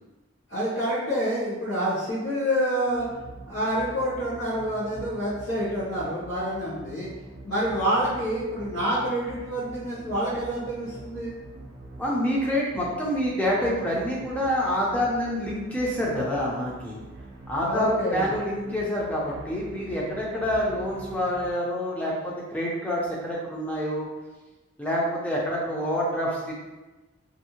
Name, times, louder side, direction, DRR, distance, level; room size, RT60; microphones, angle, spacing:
voice 1, 0.5-3.1 3.5-7.1 7.4-11.3 17.7-18.3, equal, 50° left, -12 dB, 0.8 m, -27 dB
sound 1, 2.9-21.5, right 2 dB, 60° right, 0.5 m, -45 dB
voice 2, 12.0-17.0 17.5-24.1 24.8-26.5, equal, 5° left, -5 dB, 0.4 m, -27 dB
2.6 x 2.0 x 2.8 m, 1.1 s
head